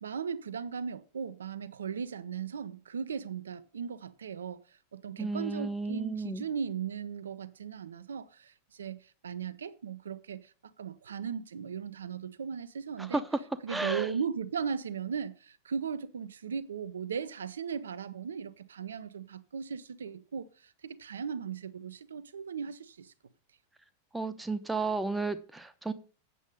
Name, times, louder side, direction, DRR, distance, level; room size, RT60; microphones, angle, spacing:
voice 1, 0.0-10.5 10.8-13.2 13.6-23.1, right 6 dB, 70° right, 0.5 m, -37 dB
voice 2, 5.2-6.4 13.0-13.2 13.7-14.1 24.1-25.9, right 3 dB, 5° right, 0.8 m, -33 dB
8.4 x 7.1 x 5.3 m
figure-of-eight pair, 90°, 0 cm